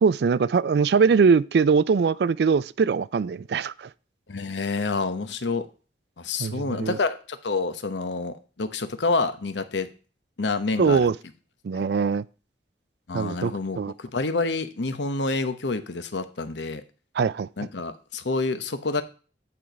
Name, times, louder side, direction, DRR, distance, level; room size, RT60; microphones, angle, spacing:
voice 1, 0.0-3.9 6.4-7.0 10.8-11.1 11.6-12.2 13.1-13.9 17.2-17.5, right 5 dB, 70° right, 0.3 m, -22 dB
voice 2, 4.3-5.7 6.2-9.9 10.4-11.1 11.8-11.9 13.1-16.8 17.6-19.0, left 3 dB, 90° left, 0.9 m, -28 dB
8.6 x 4.5 x 5.1 m
head